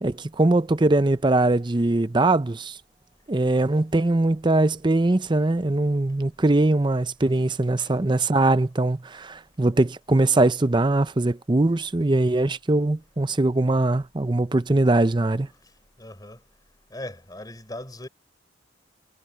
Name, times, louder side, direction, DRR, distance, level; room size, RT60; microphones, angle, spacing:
voice 1, 0.0-2.8 3.3-15.5, right 2 dB, 25° right, 0.6 m, -21 dB
voice 2, 16.0-16.4 16.9-18.1, left 1 dB, 20° left, 3.9 m, -38 dB
head